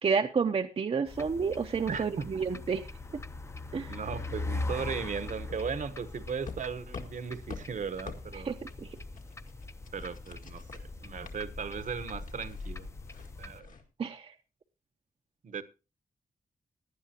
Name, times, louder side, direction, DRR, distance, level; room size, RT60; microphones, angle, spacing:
voice 1, 0.0-2.9 3.7-3.9 8.4-8.9 14.0-14.3, right 5 dB, 40° right, 0.7 m, -30 dB
sound 1, 1.1-13.6, left 2 dB, 20° left, 0.6 m, -41 dB
voice 2, 1.9-2.3 3.9-8.6 9.9-12.9 13.4-13.7 15.4-15.6, right 6 dB, 60° right, 1.0 m, -37 dB
sound 2, 6.5-13.8, left 4 dB, 65° left, 2.0 m, -46 dB
17.5 x 11.0 x 2.8 m
wide cardioid pair, 170°, 15 cm